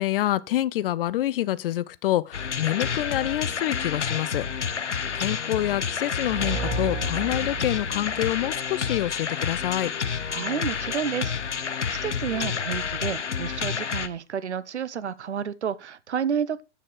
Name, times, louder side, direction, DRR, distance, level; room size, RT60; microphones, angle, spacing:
voice 1, 0.0-4.9 5.1-9.9, left 14 dB, 50° left, 0.7 m, -27 dB
sound 1, 2.3-14.1, left 6 dB, 80° left, 0.9 m, -29 dB
sound 2, 6.2-9.0, right 4 dB, 30° right, 2.4 m, -34 dB
voice 2, 10.3-16.6, right 7 dB, 75° right, 0.9 m, -31 dB
9.0 x 7.2 x 4.6 m
figure-of-eight pair, 100°, 35 cm